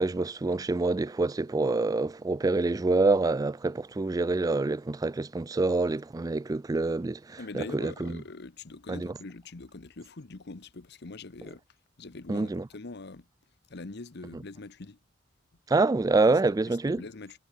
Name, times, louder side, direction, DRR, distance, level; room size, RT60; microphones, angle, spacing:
voice 1, 0.0-8.2 8.9-9.1 12.3-12.7 15.7-17.0, right 3 dB, 20° right, 0.3 m, -26 dB
voice 2, 7.4-11.6 12.0-13.3 13.7-15.0 16.2-16.3 16.7-17.4, left 3 dB, 60° left, 1.0 m, -43 dB
head